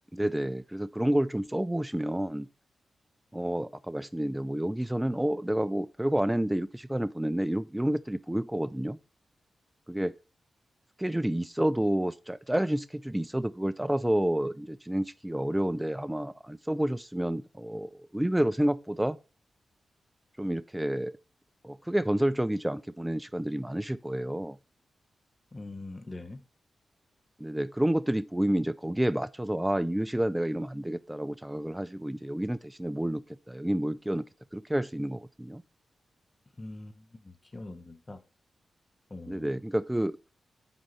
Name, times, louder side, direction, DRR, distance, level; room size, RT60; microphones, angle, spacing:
voice 1, 0.1-2.5 3.3-9.0 9.9-10.2 11.0-19.2 20.4-21.2 21.6-24.6 27.4-35.6 39.3-40.2, right 1 dB, 10° right, 0.3 m, -29 dB
voice 2, 25.5-26.4 36.6-38.2 39.1-39.5, left 2 dB, 30° left, 1.0 m, -43 dB
7.9 x 5.5 x 4.1 m
cardioid pair, 70°, 0 cm